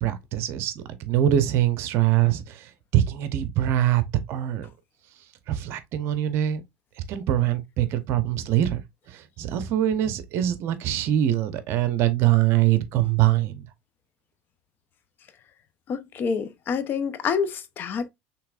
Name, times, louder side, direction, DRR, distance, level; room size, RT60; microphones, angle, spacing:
voice 1, 0.0-4.0 4.3-4.7 5.5-6.6 7.0-8.8 9.1-13.6, right 12 dB, 55° right, 0.8 m, -23 dB
voice 2, 15.9-18.1, left 6 dB, 40° left, 0.7 m, -27 dB
5.8 x 3.5 x 2.5 m
supercardioid pair, 120°, 5 cm